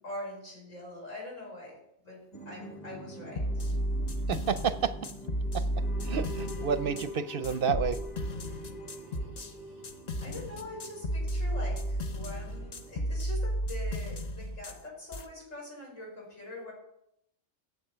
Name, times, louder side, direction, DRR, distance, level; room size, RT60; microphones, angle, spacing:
voice 1, 0.0-1.8 2.0-2.2 2.4-3.6 10.2-16.7, left 1 dB, 85° left, -3 dB, 6.2 m, -43 dB
sound 1, 2.3-13.2, right 1 dB, 25° left, 2.0 m, -45 dB
sound 2, 3.4-7.1 7.4-9.5 9.8-14.8 15.1-15.2, equal, 40° left, 0.8 m, -33 dB
voice 2, 4.3-4.9 5.5-5.6 6.0-8.0, right 7 dB, 55° right, 12 dB, 0.7 m, -30 dB
14.0 x 8.2 x 5.6 m, 0.78 s
omnidirectional pair, 1.3 m